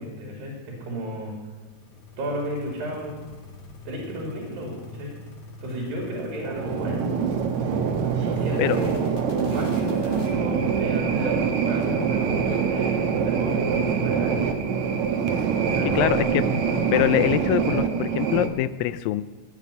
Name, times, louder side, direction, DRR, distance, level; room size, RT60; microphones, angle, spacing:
voice 1, 0.0-1.4 2.2-3.2 3.9-5.2 5.6-7.1 8.2-8.9 9.5-14.5 15.7-16.3, right 1 dB, 85° right, -2 dB, 4.4 m, -33 dB
sound 1, 1.6-10.3, left 2 dB, 50° left, 2.5 m, -42 dB
sound 2, 6.4-18.5, right 6 dB, 65° right, 2.1 m, -24 dB
voice 2, 16.0-16.4 16.9-19.2, left 13 dB, 85° left, 14 dB, 2.3 m, -23 dB
17.0 x 6.7 x 9.8 m, 1.3 s
omnidirectional pair, 4.0 m